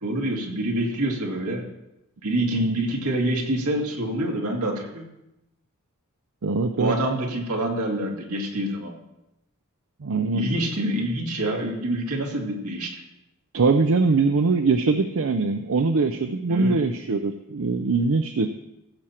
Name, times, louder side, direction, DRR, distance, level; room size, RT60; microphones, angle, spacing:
voice 1, 0.0-1.6 2.2-5.1 6.8-9.0 10.3-13.0 16.5-16.8, right 1 dB, 85° right, 0 dB, 2.2 m, -26 dB
voice 2, 6.4-7.0 10.0-10.4 13.5-18.5, right 3 dB, 65° right, 7 dB, 0.5 m, -22 dB
15.5 x 7.3 x 4.4 m, 0.88 s
head